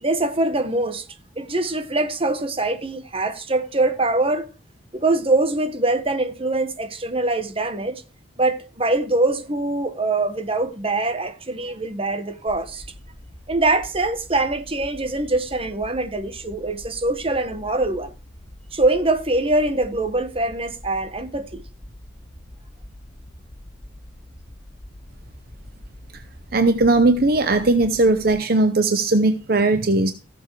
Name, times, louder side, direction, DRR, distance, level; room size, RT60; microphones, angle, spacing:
voice 1, 0.0-1.1 1.4-4.5 4.9-8.0 8.4-12.8 13.5-18.1 18.7-21.6, right 2 dB, 30° right, 1.3 m, -23 dB
sound 1, 12.5-28.3, left 1 dB, ahead, 6.4 m, -44 dB
voice 2, 26.5-30.1, right 2 dB, 50° right, 0.8 m, -18 dB
16.0 x 7.3 x 4.8 m
head